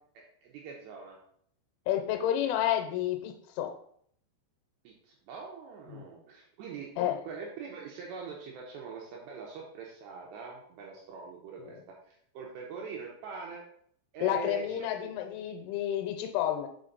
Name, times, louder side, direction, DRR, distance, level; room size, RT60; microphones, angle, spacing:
voice 1, 0.1-1.2 4.8-6.9 7.2-13.6 14.1-15.1, right 4 dB, 75° right, -1 dB, 2.7 m, -43 dB
voice 2, 1.9-3.7 5.9-6.1 7.0-7.2 11.6-11.7 14.2-16.7, left 11 dB, 85° left, 5 dB, 3.2 m, -30 dB
5.6 x 5.6 x 3.9 m, 0.65 s
omnidirectional pair, 5.6 m